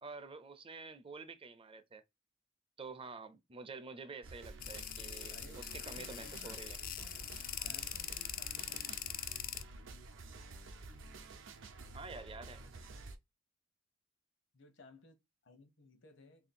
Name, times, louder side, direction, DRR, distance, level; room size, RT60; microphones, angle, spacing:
voice 1, 0.0-2.0 2.8-6.8 11.9-12.8, right 4 dB, 25° right, 0.5 m, -49 dB
sound 1, 4.2-13.2, right 2 dB, 70° right, 0.6 m, -50 dB
sound 2, 4.6-9.6, left 11 dB, 45° left, 0.3 m, -43 dB
voice 2, 5.3-5.6 5.9-6.6 7.0-7.2 7.6-9.0 14.5-16.5, left 2 dB, 65° left, 0.9 m, -60 dB
3.1 x 2.7 x 4.2 m
head